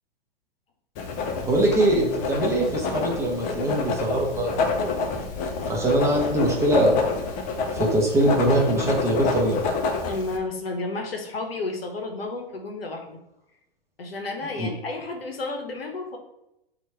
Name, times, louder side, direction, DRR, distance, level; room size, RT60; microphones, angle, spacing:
Writing, 1.0-10.4, left 4 dB, 30° left, 0.5 m, -28 dB
voice 1, 1.4-4.6 5.7-7.0 7.7-9.6 14.6-14.7, right 1 dB, 10° right, -2 dB, 0.7 m, -22 dB
voice 2, 10.1-13.2 14.0-16.2, left 3 dB, 85° left, 3 dB, 0.7 m, -32 dB
2.9 x 2.4 x 4.3 m, 0.88 s
hypercardioid pair, 110°, 29 cm